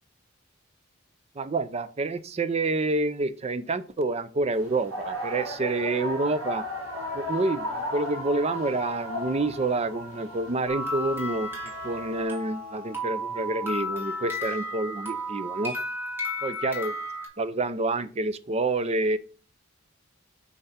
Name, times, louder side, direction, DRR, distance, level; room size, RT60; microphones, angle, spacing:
voice 1, 1.4-6.7 7.1-11.5 11.8-15.8 16.4-16.9 17.4-19.2, right 2 dB, 30° right, 0.5 m, -28 dB
sound 1, 4.5-12.2, left 1 dB, 85° right, 4.2 m, -35 dB
sound 2, 10.7-17.3, left 1 dB, 10° right, 2.2 m, -33 dB
5.6 x 4.8 x 5.6 m
head